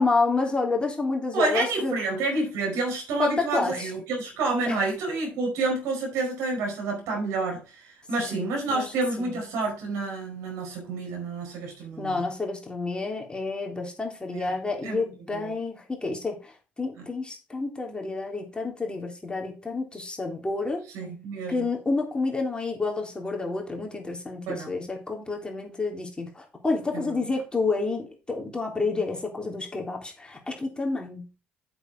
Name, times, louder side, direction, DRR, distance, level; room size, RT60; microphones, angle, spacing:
voice 1, 0.0-1.9 3.2-3.9 4.7-4.8 8.2-8.9 9.2-9.3 12.0-16.5 16.8-20.8 21.5-31.3, left 3 dB, 20° left, 3.5 m, -29 dB
voice 2, 1.3-12.2 14.3-14.5 14.8-15.0 15.3-15.5 17.0-17.1 20.9-21.7 24.5-24.7 26.9-27.1, right 3 dB, 70° right, 4.8 m, -29 dB
8.2 x 7.2 x 4.7 m
hypercardioid pair, 55°, 5 cm